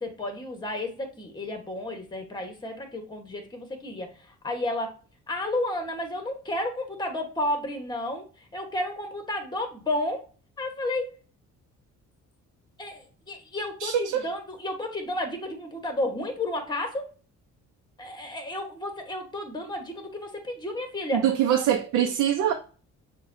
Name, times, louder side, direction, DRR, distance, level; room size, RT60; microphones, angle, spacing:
voice 1, 0.0-4.9 5.3-10.2 10.6-11.1 12.8-17.1 18.0-21.3, left 1 dB, 15° left, 1.2 m, -32 dB
voice 2, 13.8-14.3 21.1-22.5, right 10 dB, 80° right, 0.6 m, -23 dB
6.7 x 2.3 x 2.7 m
cardioid pair, 90°, 30 cm